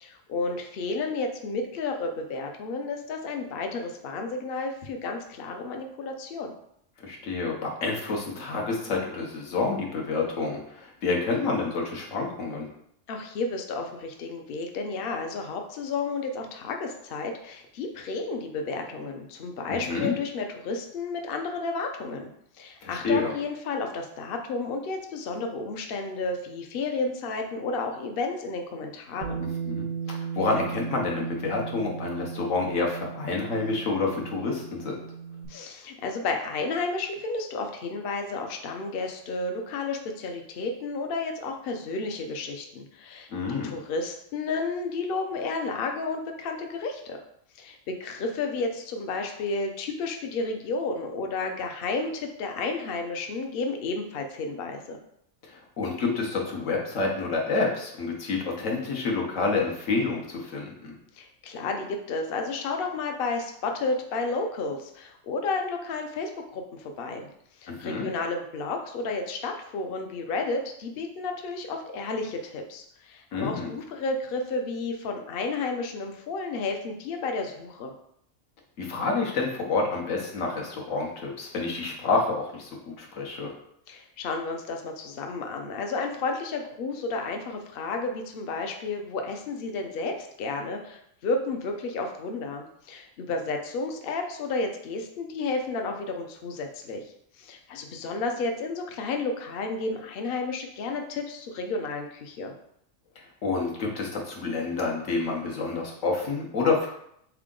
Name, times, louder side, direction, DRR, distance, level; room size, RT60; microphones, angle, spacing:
voice 1, 0.0-6.5 13.1-22.3 22.6-29.4 35.5-43.3 43.6-47.2 47.5-55.0 61.1-67.3 67.6-77.9 83.9-97.0 97.4-102.5, left 3 dB, 60° left, 4 dB, 0.7 m, -32 dB
voice 2, 7.0-12.7 19.7-20.1 22.8-23.3 29.4-35.0 43.3-43.8 55.4-60.9 67.7-68.1 73.3-73.7 78.8-83.5 103.2-106.9, left 3 dB, 80° left, 0 dB, 1.3 m, -28 dB
Bass guitar, 29.2-35.5, right 6 dB, 85° right, 1.0 m, -36 dB
3.6 x 3.5 x 3.7 m, 0.72 s
omnidirectional pair, 1.3 m